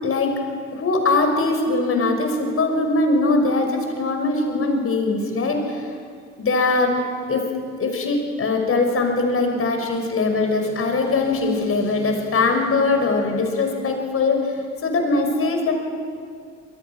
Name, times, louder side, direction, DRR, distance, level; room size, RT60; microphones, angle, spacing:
voice 1, 0.0-0.4 0.7-5.9 6.4-7.0 7.3-7.4 7.8-15.7, left 3 dB, 40° left, 4 dB, 5.9 m, -21 dB
28.0 x 26.5 x 6.3 m, 2.3 s
figure-of-eight pair, 50°, 35 cm